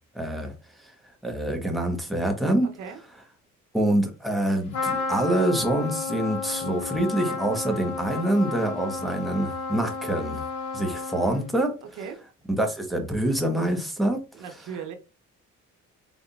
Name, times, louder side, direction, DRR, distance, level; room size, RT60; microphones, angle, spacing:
voice 1, 0.1-0.5 1.2-2.7 3.7-10.4 10.7-11.8 12.6-14.2, right 1 dB, ahead, 1.1 m, -25 dB
voice 2, 2.6-3.0 11.8-12.2 14.3-14.9, right 7 dB, 80° right, 0.9 m, -38 dB
Trumpet, 4.7-11.6, left 4 dB, 90° left, 2.0 m, -32 dB
4.1 x 3.5 x 2.4 m
cardioid pair, 90°, 30 cm